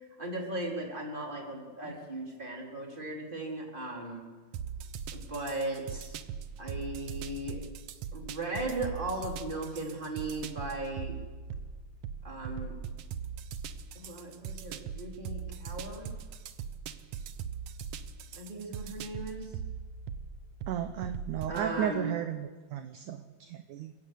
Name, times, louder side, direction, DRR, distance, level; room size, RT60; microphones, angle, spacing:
voice 1, 0.2-4.2 5.1-6.1 6.6-7.6 8.1-11.1 12.2-12.8 13.9-16.1 18.4-19.5 21.5-22.1, right 2 dB, 15° right, 0 dB, 4.0 m, -37 dB
sound 1, 4.5-21.7, right 7 dB, 90° right, 1.3 m, -41 dB
voice 2, 20.7-23.9, right 10 dB, 70° right, 8 dB, 2.2 m, -34 dB
28.0 x 16.5 x 8.5 m, 1.4 s
omnidirectional pair, 4.1 m